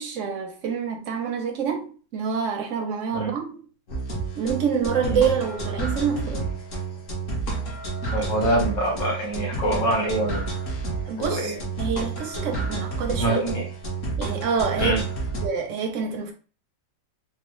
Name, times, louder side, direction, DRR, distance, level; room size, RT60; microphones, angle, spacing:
voice 1, 0.0-3.6 4.4-6.5 11.1-13.4 14.2-15.0 15.4-16.3, right 6 dB, 65° right, 0.7 m, -27 dB
sound 1, 3.9-15.5, right 3 dB, 50° left, 1.4 m, -30 dB
voice 2, 8.1-10.4 11.4-11.6 13.2-13.6 14.8-15.0, right 1 dB, 85° left, 2.3 m, -24 dB
4.3 x 2.1 x 3.1 m
omnidirectional pair, 1.9 m